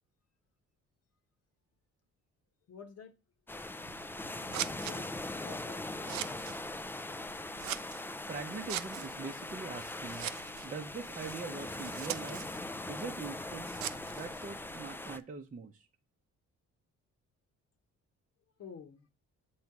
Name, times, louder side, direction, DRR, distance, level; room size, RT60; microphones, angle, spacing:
voice 1, 2.7-3.2 4.3-5.1 5.4-6.1 18.6-19.1, left 6 dB, 55° left, 1.1 m, -50 dB
sound 1, 3.5-15.2, left 2 dB, 5° left, 0.4 m, -41 dB
Scissors, 3.8-15.2, right 13 dB, 70° right, 0.5 m, -44 dB
voice 2, 8.3-10.3 10.6-12.4 12.9-13.8 14.1-15.9, right 4 dB, 25° right, 0.7 m, -42 dB
7.9 x 3.2 x 5.9 m
cardioid pair, 90°, 30 cm